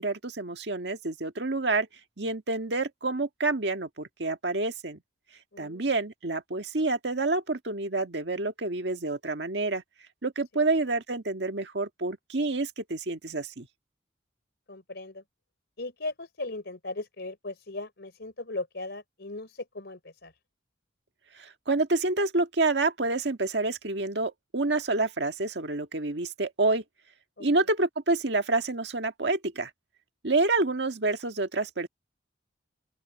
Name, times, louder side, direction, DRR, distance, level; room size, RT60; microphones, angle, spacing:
voice 1, 0.0-1.9 2.2-5.0 5.6-9.8 10.2-13.7 21.4-26.8 27.4-29.7 30.2-31.9, right 3 dB, 75° right, 1.7 m, -28 dB
voice 2, 5.5-5.9 10.5-10.6 14.7-15.2 15.8-20.3 27.4-27.5, left 2 dB, 70° left, 3.7 m, -38 dB
open air
head